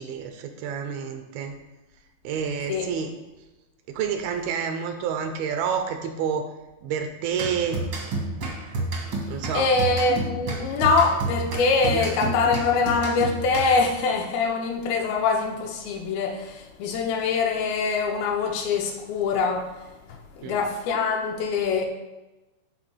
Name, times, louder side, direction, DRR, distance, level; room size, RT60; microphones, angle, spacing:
voice 1, 0.0-1.6 2.2-3.1 3.9-6.5 6.8-8.1 9.3-9.7 11.9-12.1 20.4-20.6, right 7 dB, 80° right, 6 dB, 2.4 m, -29 dB
sound 1, 7.3-14.0, right 2 dB, 65° right, 1.1 m, -30 dB
voice 2, 9.5-19.7 20.4-21.9, left 4 dB, 80° left, 3 dB, 2.5 m, -24 dB
12.5 x 4.4 x 3.3 m, 1.1 s
omnidirectional pair, 4.5 m